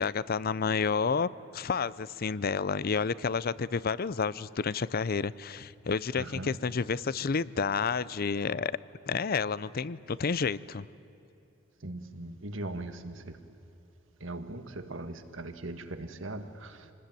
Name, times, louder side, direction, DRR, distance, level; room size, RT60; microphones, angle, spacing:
voice 1, 0.0-8.8 9.1-10.9, left 5 dB, 50° left, 19 dB, 0.6 m, -30 dB
voice 2, 6.2-6.6 11.8-13.4 14.2-16.9, right 2 dB, 75° right, 8 dB, 1.8 m, -40 dB
27.5 x 20.0 x 9.2 m, 2.9 s
head